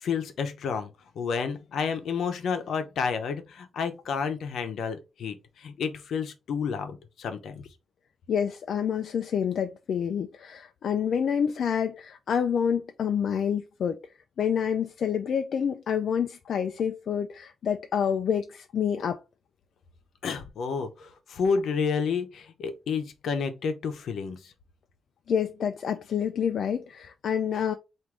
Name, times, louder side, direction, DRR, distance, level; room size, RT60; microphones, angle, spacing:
voice 1, 0.0-7.6 20.2-24.5, left 5 dB, 85° left, 0.7 m, -30 dB
voice 2, 8.3-14.0 14.4-19.2 25.3-27.7, left 7 dB, 65° left, 0.3 m, -28 dB
4.6 x 2.6 x 3.7 m
wide cardioid pair, 150°, 0 cm